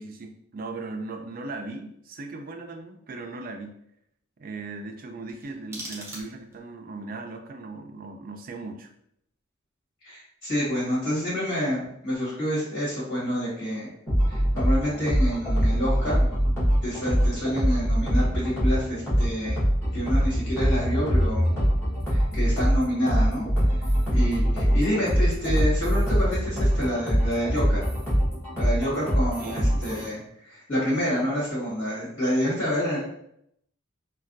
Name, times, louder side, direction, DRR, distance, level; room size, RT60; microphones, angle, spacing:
voice 1, 0.0-3.8 4.4-8.9 29.4-29.8, right 3 dB, 45° right, 5 dB, 0.4 m, -38 dB
sound 1, 5.2-6.7, right 1 dB, 15° right, 0.7 m, -41 dB
voice 2, 10.0-13.9 14.3-16.3 16.8-19.6 19.9-21.5 22.1-23.5 24.1-27.8 28.6-33.0, equal, 60° left, -8 dB, 1.4 m, -28 dB
sound 2, 14.1-30.1, equal, 10° left, 1.3 m, -23 dB
3.3 x 2.2 x 2.6 m, 0.73 s
head